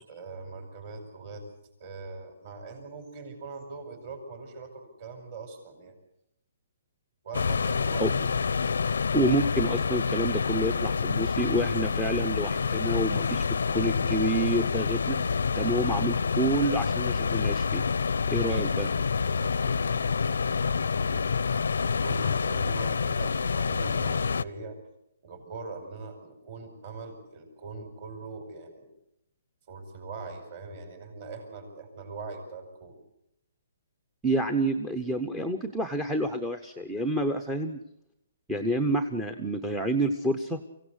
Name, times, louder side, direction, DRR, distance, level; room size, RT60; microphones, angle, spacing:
voice 1, 0.1-1.4 1.8-6.0 7.2-8.1 18.4-21.3 21.9-24.8 25.2-28.9 29.7-33.0, right 4 dB, 40° right, 6 dB, 5.5 m, -42 dB
sound 1, 7.3-24.4, left 5 dB, 85° left, 0.7 m, -27 dB
voice 2, 9.1-13.4 13.7-15.2 15.5-17.8 18.3-18.9 34.2-37.8 38.5-40.6, right 1 dB, 5° right, 3 dB, 0.8 m, -28 dB
24.0 x 16.5 x 8.1 m, 0.80 s
hypercardioid pair, 165°, 0 cm